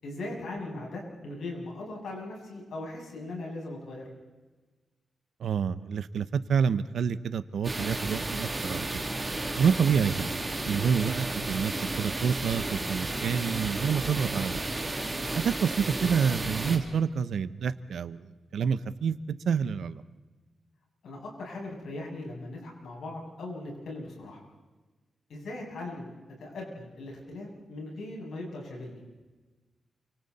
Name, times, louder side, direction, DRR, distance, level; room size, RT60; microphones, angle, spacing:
voice 1, 0.0-4.1 10.6-10.9 21.0-24.4 25.3-26.1 26.4-29.0, left 2 dB, 75° left, -2 dB, 7.5 m, -39 dB
voice 2, 5.4-8.8 9.6-10.3 10.6-14.6 15.3-18.2 18.5-19.2 19.4-20.0, right 7 dB, 75° right, 13 dB, 0.9 m, -28 dB
sound 1, 7.6-16.8, right 2 dB, 15° right, 2.9 m, -33 dB
28.5 x 25.5 x 4.3 m, 1.2 s
wide cardioid pair, 170°, 0 cm